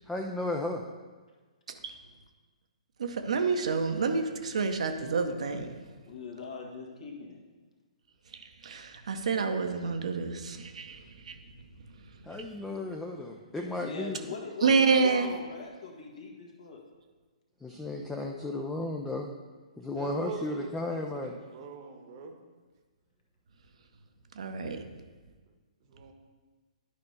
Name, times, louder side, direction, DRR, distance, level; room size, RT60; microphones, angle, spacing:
voice 1, 0.1-0.8 12.2-14.2 17.6-19.3 19.8-21.4, left 2 dB, 5° left, 1 dB, 0.5 m, -34 dB
voice 2, 3.0-5.7 8.6-11.3 14.6-15.3 24.4-24.8, right 4 dB, 60° right, 6 dB, 0.8 m, -28 dB
voice 3, 6.0-7.4 13.8-16.8, left 4 dB, 60° left, 0 dB, 1.6 m, -41 dB
voice 4, 19.9-22.3 25.9-26.1, right 4 dB, 40° right, 5 dB, 1.0 m, -42 dB
11.0 x 5.2 x 3.3 m, 1.3 s
figure-of-eight pair, 120°, 4 cm